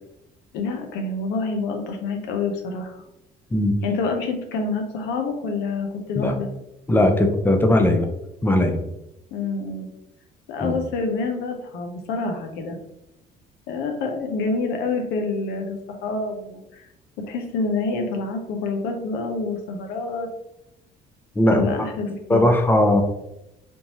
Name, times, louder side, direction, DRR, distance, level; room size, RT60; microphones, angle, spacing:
voice 1, 0.5-3.0 3.8-6.5 9.3-9.9 10.5-12.8 13.7-16.9 17.3-20.3 21.5-22.4, left 3 dB, 85° left, 4 dB, 0.7 m, -27 dB
voice 2, 6.9-8.1 8.4-8.8 10.6-10.8 21.4-21.7 22.3-23.0, left 1 dB, 10° left, 4 dB, 0.5 m, -18 dB
3.5 x 2.7 x 2.9 m, 0.86 s
cardioid pair, 110°, 17 cm